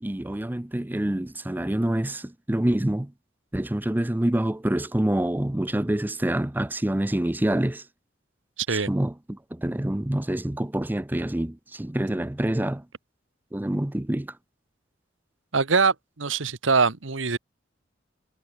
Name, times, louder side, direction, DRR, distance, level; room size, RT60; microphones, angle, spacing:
voice 1, 0.0-3.1 3.5-7.8 8.9-12.8 13.5-14.3, right 1 dB, 10° right, 0.5 m, -26 dB
voice 2, 8.6-8.9 15.5-17.4, right 4 dB, 80° right, 1.4 m, -23 dB
head